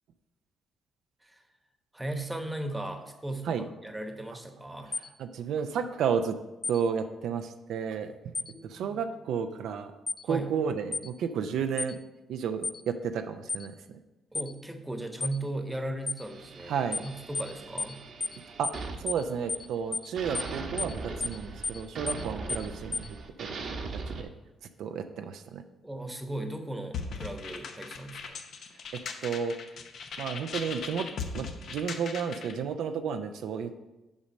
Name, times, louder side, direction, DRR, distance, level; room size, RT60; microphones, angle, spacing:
voice 1, 1.9-4.9 8.5-9.0 10.2-10.5 14.3-18.0 25.8-28.4, right 1 dB, 10° right, 6 dB, 1.0 m, -37 dB
sound 1, 4.9-5.1 6.6-6.8 8.3-8.5 10.1-10.2 10.9-11.1 11.8-11.9 12.6-12.8 13.5-13.7 14.3-14.5 15.2-15.4 16.1-16.2 16.9-17.1 17.3-17.5 17.8-17.9 18.2-18.4 18.6-18.8 19.1-19.2 19.5-19.7 19.9-20.1 20.3-20.5 20.8-20.9 21.2-21.4 21.6-21.8 22.1-22.2 22.5-22.7 22.9-23.1, left 3 dB, 30° left, 0.4 m, -32 dB
voice 2, 4.9-6.4 6.7-8.1 8.6-9.9 10.2-12.0 12.3-13.7 16.7-17.0 18.6-23.8 24.1-24.3 24.8-25.6 28.9-29.6 30.2-31.1 31.3-33.8, right 7 dB, 80° right, 7 dB, 0.5 m, -32 dB
sound 2, 16.2-19.8 20.2-24.2, right 3 dB, 60° right, 1.1 m, -40 dB
sound 3, 26.9-32.6, left 5 dB, 65° left, 0.8 m, -39 dB
7.1 x 5.2 x 5.3 m, 1.0 s
cardioid pair, 90°, 0 cm